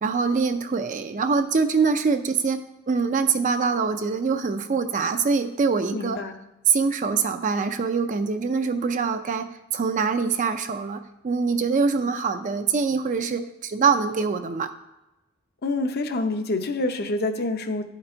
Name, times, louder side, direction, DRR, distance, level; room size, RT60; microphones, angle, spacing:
voice 1, 0.0-2.6 2.9-6.2 6.7-14.7, right 5 dB, 40° right, 8 dB, 0.4 m, -24 dB
voice 2, 5.9-6.4 15.6-17.9, left 2 dB, 50° left, 7 dB, 0.7 m, -27 dB
11.0 x 3.9 x 4.4 m, 0.98 s
head